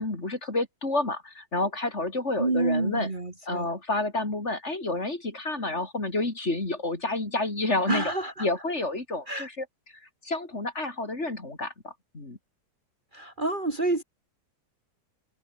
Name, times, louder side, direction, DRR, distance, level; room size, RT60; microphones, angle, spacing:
voice 1, 0.0-3.1 3.5-8.1 8.4-9.7 10.2-12.4, left 2 dB, 40° left, 4.1 m, -29 dB
voice 2, 2.4-3.7 7.9-8.5 9.3-9.5 13.1-14.0, right 2 dB, 30° right, 2.1 m, -28 dB
omnidirectional pair, 1.8 m